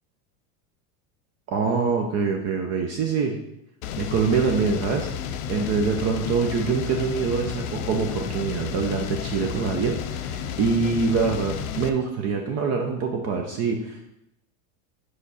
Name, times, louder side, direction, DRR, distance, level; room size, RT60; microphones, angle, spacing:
voice 1, 1.5-3.4 4.0-5.1 5.5-14.0, right 5 dB, 35° right, 3 dB, 0.6 m, -25 dB
sound 1, 3.8-11.9, left 8 dB, 80° left, 0.6 m, -32 dB
5.0 x 4.9 x 4.1 m, 0.81 s
supercardioid pair, 130°, 43 cm